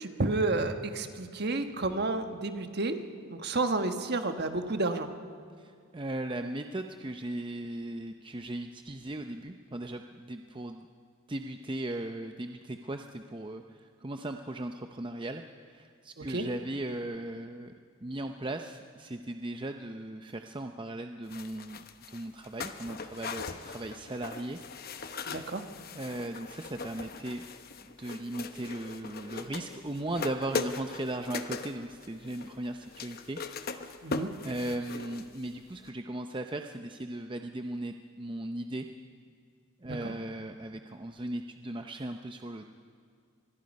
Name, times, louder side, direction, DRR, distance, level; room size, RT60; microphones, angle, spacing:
voice 1, 0.0-3.0 3.3-5.1 16.2-16.5 25.3-25.6 34.0-34.3 39.8-40.1, right 2 dB, 45° right, 7 dB, 1.3 m, -31 dB
voice 2, 5.6-10.9 11.3-17.7 18.0-24.6 24.9-25.2 26.0-27.4 28.0-33.4 33.8-33.9 34.4-38.9 39.8-42.7, right 1 dB, 20° right, 5 dB, 0.6 m, -37 dB
sound 1, 21.3-35.6 35.9-36.0, left 4 dB, 45° left, 0.9 m, -40 dB
26.0 x 21.0 x 5.4 m, 2.3 s
head